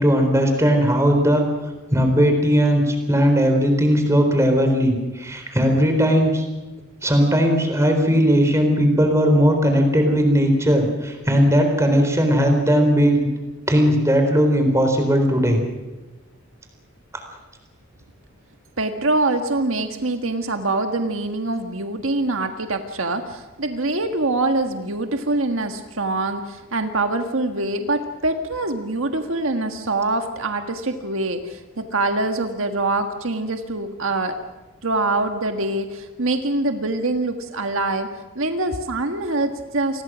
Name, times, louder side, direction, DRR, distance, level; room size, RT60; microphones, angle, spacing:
voice 1, 0.0-1.5 1.9-6.4 7.0-13.3 13.7-15.6, equal, 15° right, 4 dB, 4.0 m, -18 dB
voice 2, 18.8-34.4 34.8-40.0, right 2 dB, 65° right, 6 dB, 1.6 m, -24 dB
28.0 x 21.0 x 6.3 m, 1.2 s
head